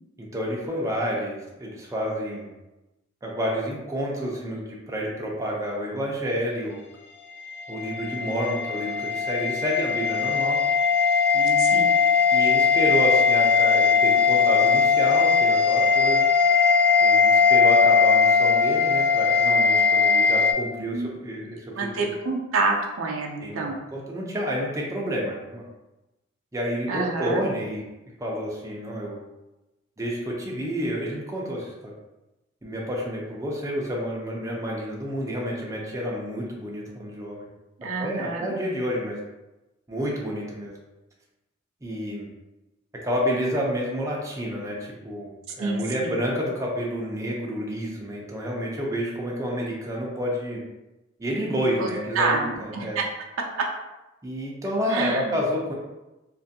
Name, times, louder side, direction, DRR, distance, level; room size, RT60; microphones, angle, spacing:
voice 1, 0.2-2.5 3.2-6.8 7.7-10.6 11.3-11.8 12.3-16.3 17.0-21.7 22.0-22.1 23.4-23.7 23.9-25.6 26.5-27.8 28.2-29.2 30.0-31.9 32.6-37.5 38.0-39.2 39.9-40.7 41.8-42.3 43.0-50.6 51.2-53.0 54.2-55.7, equal, 15° right, -3 dB, 0.5 m, -29 dB
sound 1, 7.5-20.5, left 5 dB, 50° left, 0.5 m, -19 dB
voice 2, 20.8-21.1 21.7-23.8 26.9-27.5 37.8-38.6 45.6-46.2 51.8-51.9 52.1-53.0 53.6-53.7 54.9-55.4, right 3 dB, 70° right, 0 dB, 0.4 m, -27 dB
2.6 x 2.5 x 2.6 m, 1.0 s
head